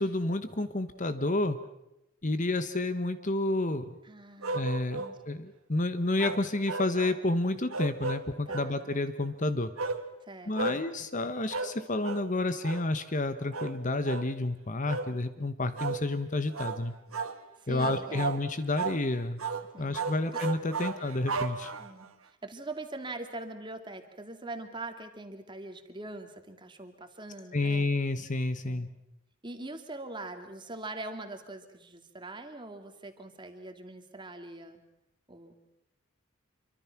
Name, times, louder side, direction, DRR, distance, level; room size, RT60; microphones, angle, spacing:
voice 1, 0.0-1.6 2.2-3.9 4.5-9.7 10.5-16.9 17.7-19.4 19.8-21.7 27.5-28.9, left 2 dB, 35° left, 11 dB, 1.2 m, -30 dB
voice 2, 4.0-4.7 5.0-5.2 8.5-8.8 10.2-10.8 17.6-18.5 19.7-20.1 20.3-20.4 20.8-21.0 21.8-27.9 28.7-28.9 29.4-34.8 35.3-35.7, right 2 dB, 20° right, 6 dB, 2.5 m, -43 dB
sound 1, 4.4-5.2 6.2-7.2 7.7-8.7 9.8-10.0 10.5-10.8 11.5-11.8 12.0-12.3 12.6-12.9 13.5-13.8 14.0-14.3 14.9-15.1 15.8-16.0 16.5-16.8 17.1-17.4 17.8-18.4 18.8-19.0 19.4-19.6 19.9-22.1, right 4 dB, 80° right, 1.9 m, -34 dB
27.0 x 24.5 x 6.0 m, 0.89 s
head